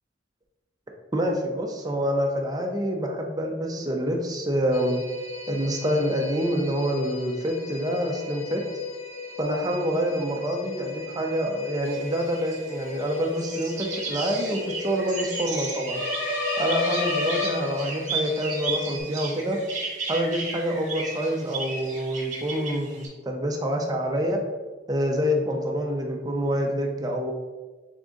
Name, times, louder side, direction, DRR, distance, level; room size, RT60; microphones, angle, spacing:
voice 1, 1.1-5.0 5.5-8.6 9.4-16.0 16.6-19.6 20.1-24.4 24.9-27.3, equal, 20° right, 1 dB, 0.5 m, -27 dB
sound 1, 4.7-19.0, left 5 dB, 35° left, 0.4 m, -38 dB
sound 2, 11.8-23.1, right 4 dB, 40° right, 1.2 m, -34 dB
sound 3, 15.9-18.3, left 3 dB, 75° left, 1.1 m, -28 dB
3.8 x 3.6 x 3.8 m, 1.3 s
head